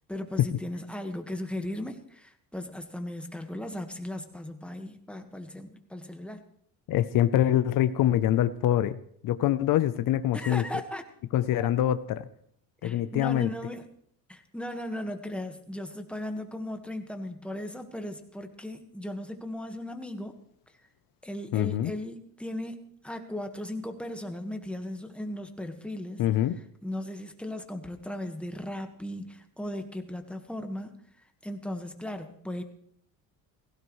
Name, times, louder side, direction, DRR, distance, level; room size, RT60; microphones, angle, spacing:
voice 1, 0.1-6.4 10.3-11.0 11.6-11.7 12.8-13.8 14.3-20.4 21.2-26.2 26.8-30.9 31.4-32.6, left 1 dB, 5° left, 5 dB, 1.5 m, -37 dB
voice 2, 6.9-9.0 9.2-10.6 11.3-12.2 12.8-13.5 21.5-21.9 26.2-26.5, left 12 dB, 60° left, 12 dB, 0.7 m, -24 dB
17.0 x 16.0 x 3.2 m, 0.64 s
cardioid pair, 115°, 38 cm